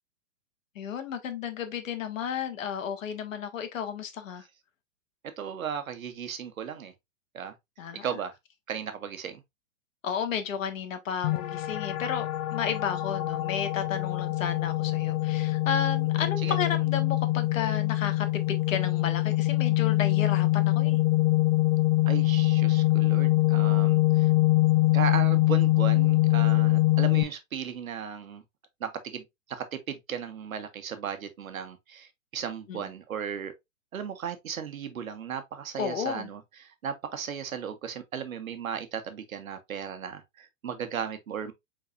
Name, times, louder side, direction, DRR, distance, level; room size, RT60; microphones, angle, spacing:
voice 1, 0.7-4.4 7.8-8.1 10.0-21.0 32.7-32.8 35.8-36.3, left 7 dB, 75° left, 1.5 m, -33 dB
voice 2, 5.4-6.9 7.3-7.5 8.0-8.3 8.7-9.4 16.2-16.6 22.1-24.3 24.9-28.4 28.8-33.5 33.9-41.5, right 8 dB, 90° right, 1.2 m, -36 dB
sound 1, 11.2-27.2, left 18 dB, 30° left, 0.8 m, -24 dB
5.3 x 4.0 x 2.5 m
hypercardioid pair, 135°, 40 cm